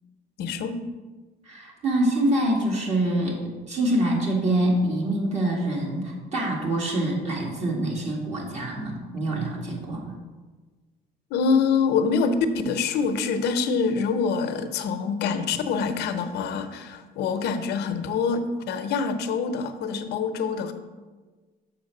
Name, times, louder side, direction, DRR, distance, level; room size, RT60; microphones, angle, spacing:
voice 1, 0.4-0.8 11.3-12.3 12.6-20.7, left 5 dB, 80° left, 8 dB, 0.7 m, -25 dB
voice 2, 1.5-3.4 3.7-10.1, right 1 dB, 40° right, -1 dB, 2.1 m, -25 dB
6.6 x 4.6 x 6.6 m, 1.3 s
cardioid pair, 110°, 17 cm